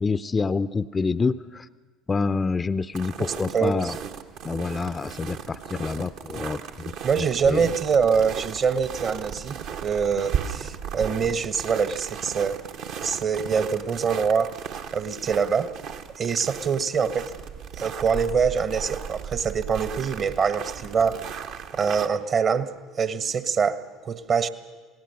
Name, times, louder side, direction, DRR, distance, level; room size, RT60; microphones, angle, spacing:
voice 1, 0.0-1.7 2.1-4.0 4.4-7.6, left 4 dB, 25° left, 15 dB, 0.6 m, -27 dB
sound 1, 2.9-22.1, right 8 dB, 55° right, 1.4 m, -36 dB
voice 2, 3.5-3.9 7.0-12.6 13.0-14.6 14.9-15.7 16.2-17.3 17.7-21.2 21.7-24.5, right 6 dB, 40° right, 12 dB, 1.3 m, -24 dB
27.5 x 18.5 x 6.4 m, 1.4 s
figure-of-eight pair, 60°, 0 cm